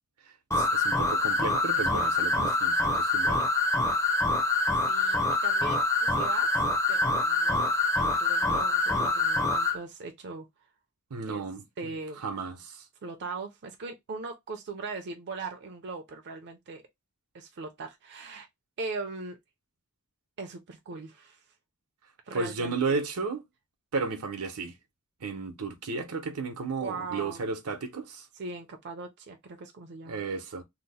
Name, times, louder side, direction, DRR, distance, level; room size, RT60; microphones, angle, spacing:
sound 1, 0.5-9.8, left 2 dB, 15° left, 0.5 m, -25 dB
voice 1, 0.6-3.4 11.1-12.8 22.3-23.4 23.9-24.7 25.2-28.3 30.1-30.6, right 4 dB, 85° right, 0.8 m, -33 dB
voice 2, 4.9-6.5 6.9-7.7 8.0-10.5 11.3-11.4 11.8-12.2 13.0-16.8 17.3-18.5 18.8-19.4 20.4-21.4 22.3-23.0 26.8-27.4 28.3-30.2, right 3 dB, 50° right, 0.5 m, -39 dB
2.8 x 2.0 x 4.0 m
head